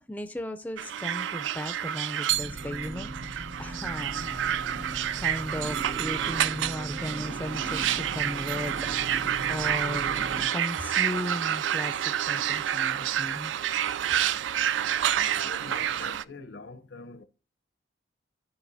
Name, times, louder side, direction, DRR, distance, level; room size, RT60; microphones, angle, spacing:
voice 1, 0.0-4.5 5.2-8.8 9.5-13.5, left 1 dB, 10° left, 0.3 m, -36 dB
sound 1, 0.8-16.2, right 10 dB, 90° right, 0.3 m, -29 dB
sound 2, 2.3-10.5, right 1 dB, 70° right, 0.9 m, -39 dB
voice 2, 15.1-17.2, left 4 dB, 75° left, 0.7 m, -44 dB
15.5 x 5.2 x 2.6 m
head